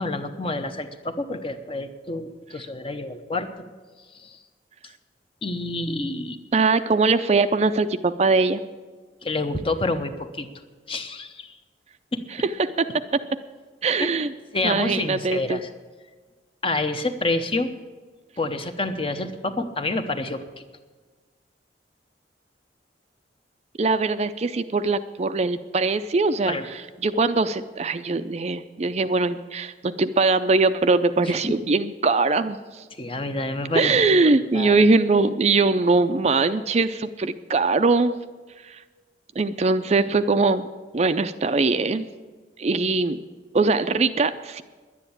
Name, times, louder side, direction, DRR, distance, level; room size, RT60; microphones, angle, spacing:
voice 1, 0.0-3.5 4.1-4.4 5.4-6.4 9.2-10.5 10.9-11.6 12.1-12.2 14.0-14.1 14.5-15.7 16.6-17.7 18.4-20.4 26.5-26.6 31.4-31.5 33.0-34.0 34.5-34.7, left 2 dB, 30° left, 8 dB, 0.9 m, -28 dB
voice 2, 6.5-8.6 12.6-12.9 13.1-13.2 13.8-14.3 14.6-15.6 23.8-32.8 33.7-38.1 38.6-38.8 39.4-40.7 40.9-42.1 42.6-43.2 43.5-44.6, right 3 dB, 35° right, 11 dB, 0.4 m, -21 dB
11.0 x 9.9 x 8.7 m, 1.4 s
head